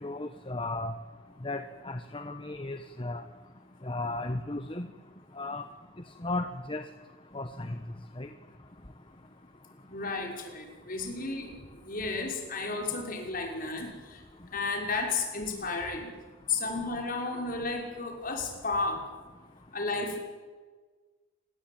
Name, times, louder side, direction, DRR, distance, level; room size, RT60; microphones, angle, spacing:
voice 1, 0.0-0.9 1.4-3.2 3.8-4.9 5.4-5.6 6.2-6.8 7.3-7.7 8.2-8.3, left 2 dB, 25° left, 8 dB, 1.2 m, -35 dB
voice 2, 9.9-11.6 11.9-14.2 14.5-16.1 16.5-19.1 19.7-20.2, left 3 dB, 45° left, 2 dB, 6.1 m, -33 dB
28.5 x 21.0 x 9.0 m, 1.4 s
head